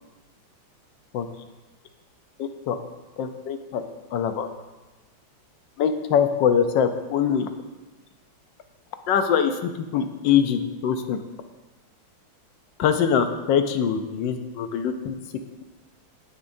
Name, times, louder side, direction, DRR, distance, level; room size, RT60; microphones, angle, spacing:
voice 1, 2.4-2.8 3.2-3.8 4.1-4.5 5.8-7.5 9.1-11.2 12.8-15.2, left 7 dB, 70° left, 8 dB, 1.3 m, -23 dB
17.5 x 6.7 x 2.6 m, 1.1 s
omnidirectional pair, 2.2 m